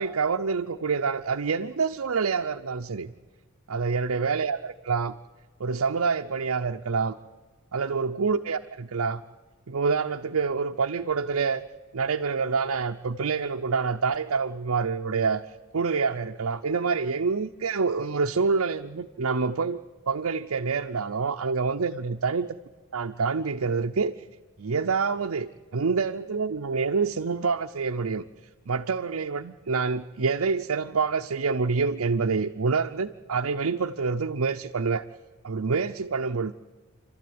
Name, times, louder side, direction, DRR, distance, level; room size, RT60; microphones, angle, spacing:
voice 1, 0.0-3.1 3.7-5.1 5.6-7.2 7.7-9.2 9.7-11.6 11.9-15.4 15.7-19.8 20.1-22.5 22.9-24.1 24.6-28.2 28.7-35.0 35.4-36.5, right 5 dB, 75° right, 3 dB, 0.6 m, -27 dB
27.5 x 12.5 x 9.5 m, 1.3 s
head